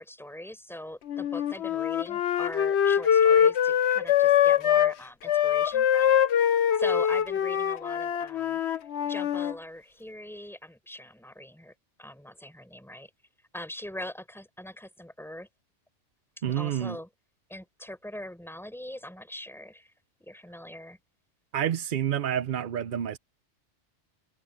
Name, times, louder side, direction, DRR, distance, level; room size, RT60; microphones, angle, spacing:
voice 1, 0.0-6.2 6.7-8.6 9.1-11.7 12.0-13.1 13.5-15.5 16.4-17.1 17.5-19.9 20.2-21.0, left 1 dB, ahead, 5.4 m, -42 dB
Wind instrument woodwind instrument, 1.1-4.9 5.3-9.5, left 9 dB, 65° left, 1.0 m, -23 dB
voice 2, 16.4-17.0 21.5-23.2, right 10 dB, 55° right, 0.6 m, -28 dB
omnidirectional pair, 1.2 m